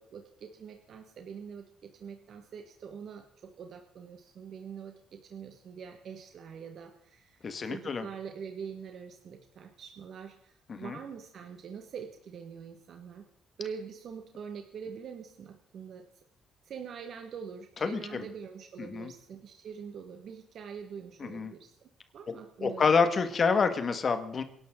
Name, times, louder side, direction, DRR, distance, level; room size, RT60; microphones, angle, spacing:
voice 1, 0.0-13.2 13.6-16.0 16.6-22.9, right 6 dB, 65° right, 5 dB, 1.5 m, -44 dB
voice 2, 7.4-8.1 10.7-11.0 17.8-18.3 18.8-19.1 21.2-21.5 22.6-24.4, left 5 dB, 45° left, 9 dB, 1.6 m, -28 dB
27.5 x 11.5 x 3.8 m, 0.73 s
cardioid pair, 90°, 0 cm